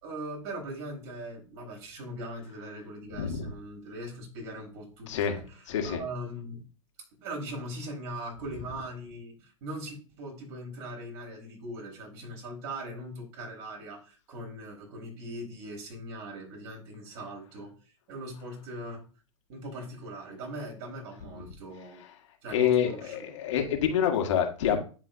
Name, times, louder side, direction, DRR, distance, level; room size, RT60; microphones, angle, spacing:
voice 1, 0.0-6.6 7.2-19.1 19.5-22.0 22.4-23.2, right 1 dB, 50° right, 0 dB, 4.1 m, -40 dB
voice 2, 3.1-3.5 5.1-5.4 5.7-6.0 22.5-24.8, left 9 dB, 60° left, 3 dB, 1.6 m, -27 dB
12.0 x 4.9 x 2.6 m, 0.37 s
figure-of-eight pair, 100°, 17 cm